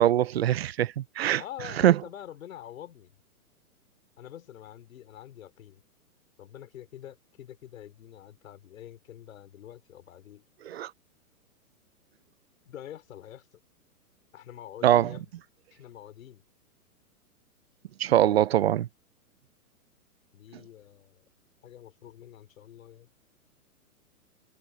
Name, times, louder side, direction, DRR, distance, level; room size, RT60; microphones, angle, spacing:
voice 1, 0.0-1.4 1.8-1.9 10.7-10.9 14.8-15.2 18.0-18.9, right 12 dB, 45° right, 0.6 m, -22 dB
voice 2, 1.4-3.2 4.2-5.8 6.4-10.4 12.6-13.5 14.3-15.3 15.7-16.4 20.3-21.2 21.6-23.1, left 11 dB, 60° left, 3.7 m, -46 dB
hypercardioid pair, 160°, 45 cm